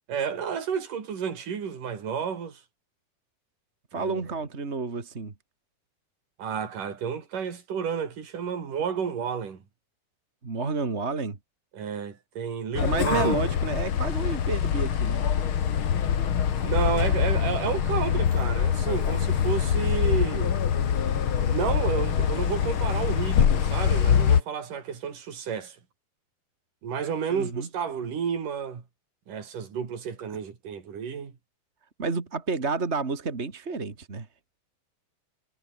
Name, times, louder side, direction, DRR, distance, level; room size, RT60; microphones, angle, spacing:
voice 1, 0.1-2.6 3.9-4.2 6.4-9.6 11.7-13.4 16.6-20.5 21.5-25.8 26.8-28.8 29.3-31.3, right 7 dB, 55° right, 5.3 m, -31 dB
voice 2, 3.9-5.3 10.4-11.4 12.8-15.2 27.3-27.7 32.0-34.3, right 4 dB, 25° right, 1.6 m, -30 dB
sound 1, 12.7-24.4, left 8 dB, 50° left, 1.7 m, -24 dB
omnidirectional pair, 4.5 m